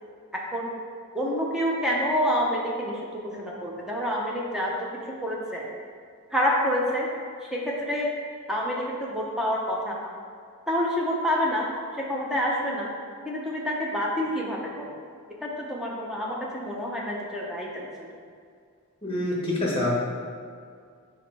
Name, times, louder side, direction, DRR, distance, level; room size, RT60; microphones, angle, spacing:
voice 1, 0.3-0.7 1.1-5.7 6.3-7.1 7.5-8.1 8.5-10.1 10.7-11.7 12.0-12.9 13.2-15.0 15.4-18.1, equal, ahead, -4 dB, 0.9 m, -28 dB
voice 2, 19.0-19.9, left 1 dB, 25° left, -4 dB, 1.3 m, -26 dB
4.9 x 4.1 x 5.6 m, 2.2 s
head